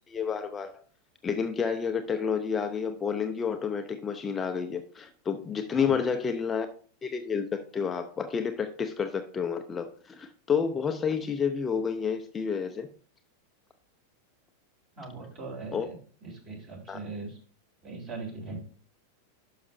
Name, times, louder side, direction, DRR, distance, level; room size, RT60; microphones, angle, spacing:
voice 1, 0.1-0.8 1.2-6.7 7.0-12.9 15.7-15.9 16.9-17.0, left 6 dB, 20° left, 0.6 m, -30 dB
voice 2, 15.0-17.4 17.8-18.6, right 3 dB, 35° right, 3.4 m, -40 dB
12.0 x 5.8 x 2.6 m
figure-of-eight pair, 90°, 0 cm